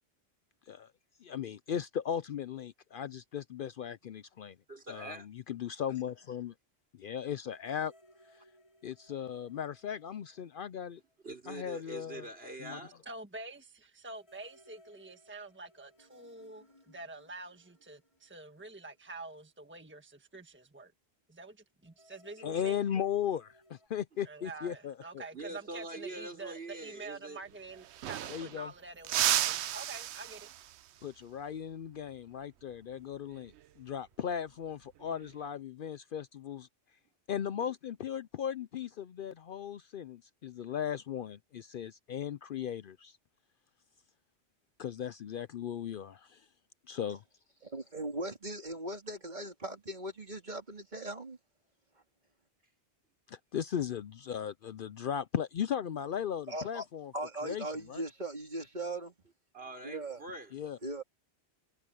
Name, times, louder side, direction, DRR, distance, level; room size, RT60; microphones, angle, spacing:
voice 1, 1.2-4.6 4.9-6.5 6.9-7.9 8.8-11.0 11.5-12.3 12.6-12.8 22.4-25.2 28.3-28.7 31.0-36.7 37.3-43.2 44.8-46.4 46.9-47.2 53.3-57.1 57.4-58.0 60.5-60.8, left 9 dB, 60° left, 0.7 m, -37 dB
voice 2, 4.7-5.3 11.2-13.0 25.3-27.4 37.6-37.7 59.5-60.5, right 2 dB, 60° right, 4.9 m, -44 dB
sound 1, 7.5-11.3 11.5-11.6 14.1-19.5 21.9-23.9, equal, 30° left, 5.0 m, -64 dB
voice 3, 13.0-20.9 21.3-22.8 24.2-30.5, right 3 dB, 10° right, 1.4 m, -47 dB
sound 2, 27.4-27.5 27.7-28.7 29.0-30.8 33.3-33.6 35.0-35.5, right 12 dB, 90° right, 0.9 m, -33 dB
voice 4, 47.6-51.4 56.5-56.8 57.1-59.1 59.8-60.2 60.8-61.0, right 1 dB, 45° right, 3.0 m, -39 dB
omnidirectional pair, 1.1 m